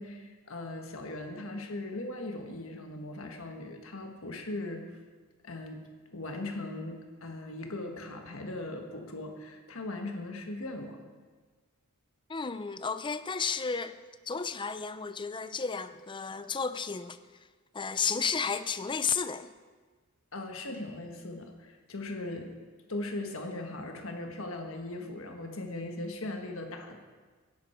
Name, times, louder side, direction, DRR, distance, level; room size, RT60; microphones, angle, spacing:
voice 1, 0.0-4.8 5.4-5.8 6.1-11.0 20.3-22.5 22.9-27.0, left 2 dB, 65° left, 3 dB, 1.5 m, -39 dB
voice 2, 12.3-14.0 14.3-17.2 17.7-19.5, left 5 dB, 20° left, 12 dB, 0.5 m, -32 dB
16.5 x 10.5 x 4.5 m, 1.4 s
head